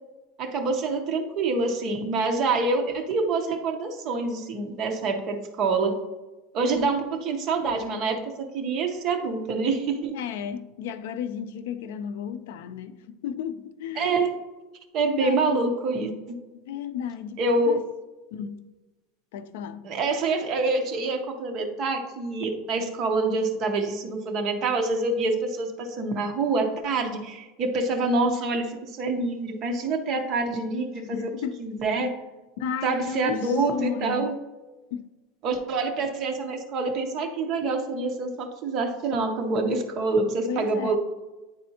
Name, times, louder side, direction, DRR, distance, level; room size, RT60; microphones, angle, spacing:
voice 1, 0.4-6.0 6.5-8.2 8.5-10.2 14.0-14.3 14.9-16.1 17.4-17.8 19.8-31.3 31.6-32.1 32.8-34.3 35.4-41.0, right 3 dB, 30° right, 0.7 m, -26 dB
voice 2, 10.1-14.2 15.0-15.6 16.5-17.8 18.3-18.6 19.3-19.9 31.1-31.6 32.6-34.3 34.9-35.1 40.5-41.0, left 8 dB, 70° left, 0.4 m, -33 dB
9.6 x 4.1 x 2.8 m
supercardioid pair, 180°, 0 cm